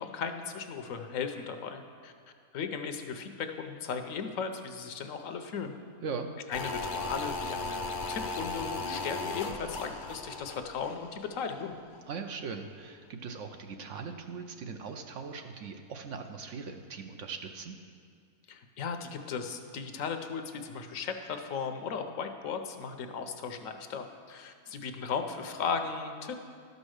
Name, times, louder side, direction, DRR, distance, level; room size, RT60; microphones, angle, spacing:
voice 1, 0.0-2.1 2.5-5.7 6.5-11.7 18.5-26.3, left 6 dB, 70° left, 6 dB, 1.0 m, -36 dB
sound 1, 6.5-11.7 11.9-12.0, left 3 dB, 50° left, 0.6 m, -37 dB
voice 2, 12.1-17.7, right 5 dB, 65° right, 6 dB, 0.9 m, -40 dB
12.0 x 5.3 x 6.4 m, 2.2 s
omnidirectional pair, 1.5 m